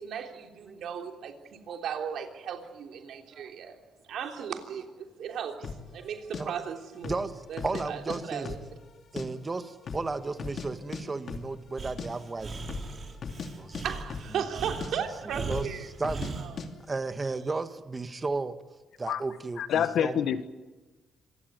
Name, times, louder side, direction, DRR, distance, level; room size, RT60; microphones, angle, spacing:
voice 1, 0.0-3.8 4.1-5.7 5.9-7.1 7.5-8.6 13.8-15.9 16.4-16.7, right 8 dB, 75° right, 3.4 m, -36 dB
sound 1, 5.6-5.9 6.3-6.4 7.0-7.3 7.6-8.2 8.5-9.3 9.5-9.6 9.9-10.7 10.9-11.0 11.3-11.5 11.8-12.1 12.6-12.9 13.2-13.5 13.7-14.5 14.8-14.9 15.5-15.7 16.0-16.3 16.6-16.7, left 5 dB, 50° left, 2.9 m, -37 dB
voice 2, 7.0-8.5 9.1-12.7 13.6-13.8 14.4-14.5 15.5-15.7 16.0-16.3 16.9-18.6 19.0-20.2, right 3 dB, 25° right, 1.7 m, -34 dB
Breathing, 11.8-16.5, right 4 dB, 45° right, 4.2 m, -38 dB
voice 3, 19.6-20.5, left 9 dB, 75° left, 1.5 m, -27 dB
26.0 x 17.5 x 9.5 m
cardioid pair, 90°, 0 cm